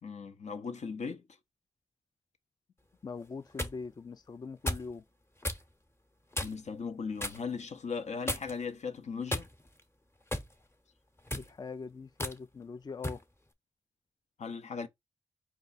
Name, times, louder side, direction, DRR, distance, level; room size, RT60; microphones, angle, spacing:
voice 1, 0.0-1.2 6.4-9.5 14.4-14.9, left 5 dB, 70° left, 0.7 m, -38 dB
voice 2, 3.0-5.0 11.3-13.2, left 4 dB, 35° left, 0.3 m, -42 dB
sound 1, 3.2-3.8 4.7-4.9 5.4-5.6 6.3-6.7 7.2-7.4 8.3-8.7 9.3-9.8 10.3-10.5 11.2-11.5 12.2-12.4 13.0-13.2, left 1 dB, 20° left, 0.9 m, -35 dB
4.5 x 2.4 x 4.0 m
cardioid pair, 40°, 12 cm